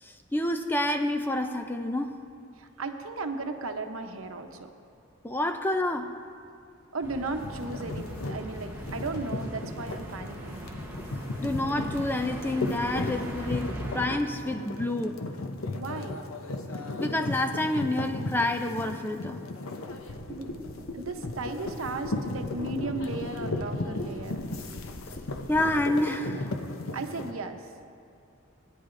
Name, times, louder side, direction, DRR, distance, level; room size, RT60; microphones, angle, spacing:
voice 1, 0.0-2.1 5.2-6.1 11.4-15.2 17.0-19.4 25.5-26.4, left 1 dB, 10° left, 6 dB, 0.3 m, -28 dB
voice 2, 2.6-4.7 6.9-10.7 15.7-16.3 20.3-20.7 20.9-24.4 26.9-27.6, right 3 dB, 80° right, 5 dB, 0.9 m, -35 dB
sound 1, 7.0-14.1, right 1 dB, 10° right, 1.0 m, -40 dB
sound 2, 7.4-27.3, left 2 dB, 80° left, 0.7 m, -36 dB
sound 3, 19.9-25.8, left 1 dB, 65° left, 1.5 m, -40 dB
19.5 x 10.0 x 2.6 m, 2.5 s
head